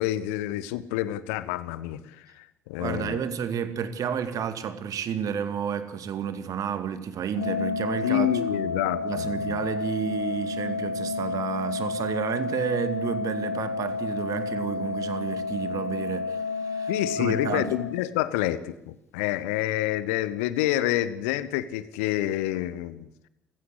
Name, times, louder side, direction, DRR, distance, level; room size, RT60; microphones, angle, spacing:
voice 1, 0.0-3.2 8.0-9.6 16.9-23.1, left 14 dB, 65° left, 1.2 m, -28 dB
voice 2, 2.8-8.6 9.0-16.9 17.2-17.7, right 8 dB, 45° right, 2.2 m, -31 dB
Organ, 7.3-18.4, left 4 dB, 85° left, 2.1 m, -31 dB
29.0 x 16.0 x 8.3 m
figure-of-eight pair, 55°, 8 cm